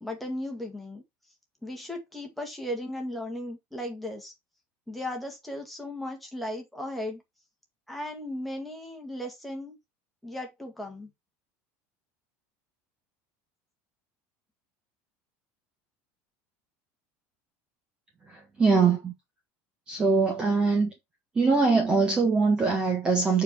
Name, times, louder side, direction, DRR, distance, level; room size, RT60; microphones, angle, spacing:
voice 1, 0.0-1.0 1.6-4.3 4.9-7.2 7.9-9.8 10.2-11.1, left 1 dB, ahead, 1.9 m, -36 dB
voice 2, 18.3-19.1 19.9-20.9 21.3-23.4, right 4 dB, 15° right, 1.3 m, -23 dB
8.0 x 4.6 x 4.6 m
cardioid pair, 180°, 6 cm